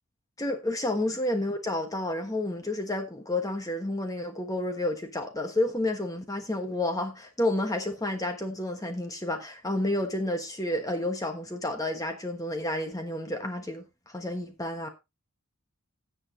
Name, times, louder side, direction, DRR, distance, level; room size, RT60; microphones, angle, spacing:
voice 1, 0.4-14.9, left 1 dB, 15° left, 1.2 m, -30 dB
16.5 x 7.2 x 2.7 m
head